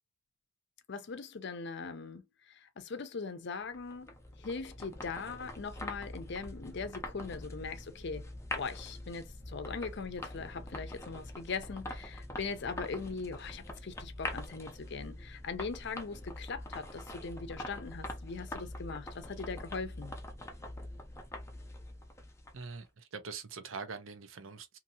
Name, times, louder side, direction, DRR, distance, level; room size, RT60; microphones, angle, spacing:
voice 1, 0.9-8.3 8.5-20.1, left 4 dB, 60° left, 0.5 m, -40 dB
sound 1, 3.7-22.8, left 1 dB, 15° left, 0.5 m, -44 dB
voice 2, 22.5-24.8, right 4 dB, 85° right, 0.6 m, -43 dB
2.7 x 2.7 x 2.7 m
head